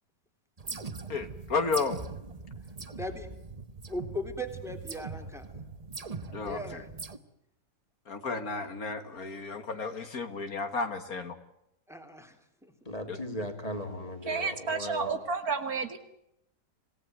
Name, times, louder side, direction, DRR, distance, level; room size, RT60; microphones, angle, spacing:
sound 1, 0.6-7.2, right 4 dB, 25° right, 1.1 m, -41 dB
voice 1, 1.1-2.0 6.3-6.8 8.1-11.4 13.1-13.2, left 4 dB, 60° left, 9 dB, 2.1 m, -33 dB
voice 2, 3.0-3.3 3.9-5.5 6.4-6.9 11.9-12.4 12.6-12.7, equal, ahead, 5 dB, 3.6 m, -38 dB
voice 3, 12.8-15.1, equal, 20° left, 5 dB, 3.3 m, -37 dB
voice 4, 14.3-16.0, right 4 dB, 60° right, 9 dB, 2.6 m, -31 dB
27.0 x 18.5 x 9.5 m, 0.80 s
omnidirectional pair, 1.8 m